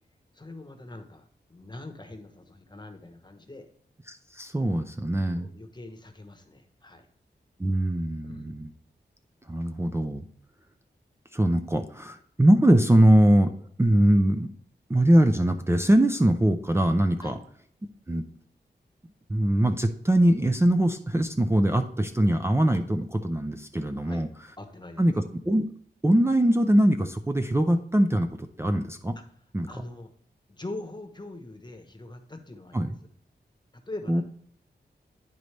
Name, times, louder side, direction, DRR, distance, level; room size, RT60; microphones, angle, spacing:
voice 1, 0.3-3.7 5.3-7.1 8.2-8.5 17.2-17.4 24.0-24.2 24.6-25.0 29.1-29.2 29.7-30.1 30.5-32.8 33.7-34.2, left 2 dB, 25° left, 6 dB, 1.0 m, -42 dB
voice 2, 4.1-5.5 7.6-8.7 9.5-10.2 11.3-13.5 13.8-14.5 14.9-17.4 18.1-18.2 19.3-24.3 25.0-25.7 26.0-29.2 29.5-29.7 32.7-32.9 34.1-34.2, right 1 dB, 15° right, 6 dB, 0.5 m, -22 dB
10.5 x 4.0 x 3.3 m, 0.62 s
cardioid pair, 60°, 18 cm